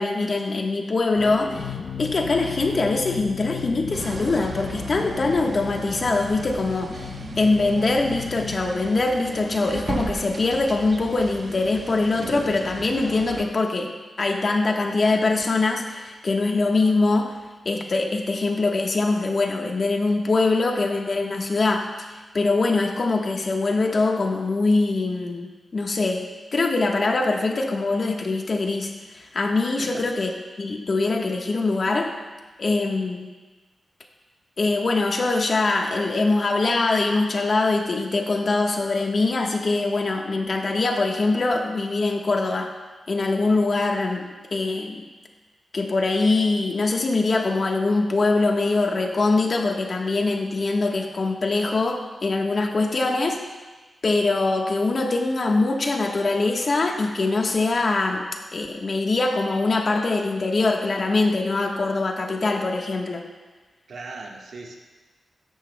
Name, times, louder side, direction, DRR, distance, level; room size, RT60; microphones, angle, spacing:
voice 1, 0.0-7.1 7.4-17.4 17.6-26.3 26.5-30.3 30.6-32.1 32.6-33.3 34.6-42.7 43.1-45.1 45.7-53.4 54.0-58.3 58.5-63.2, left 3 dB, 50° left, 2 dB, 1.3 m, -23 dB
sound 1, 1.2-9.9, left 7 dB, 75° left, 0.7 m, -36 dB
sound 2, 3.9-13.4, right 3 dB, 50° right, 1.0 m, -36 dB
voice 2, 63.9-64.8, right 3 dB, 75° right, 0 dB, 1.5 m, -38 dB
15.0 x 11.5 x 2.3 m, 1.3 s
wide cardioid pair, 90°, 0 cm